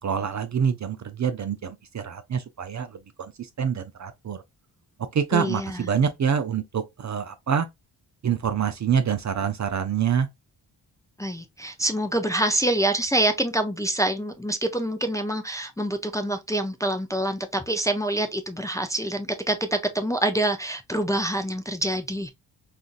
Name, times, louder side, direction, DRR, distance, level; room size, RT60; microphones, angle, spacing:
voice 1, 0.0-4.4 5.1-7.7 8.2-10.3, right 7 dB, 40° right, 0.5 m, -26 dB
voice 2, 5.3-5.8 11.2-22.3, right 1 dB, 5° left, 0.5 m, -26 dB
3.7 x 2.6 x 2.4 m
supercardioid pair, 50°, 46 cm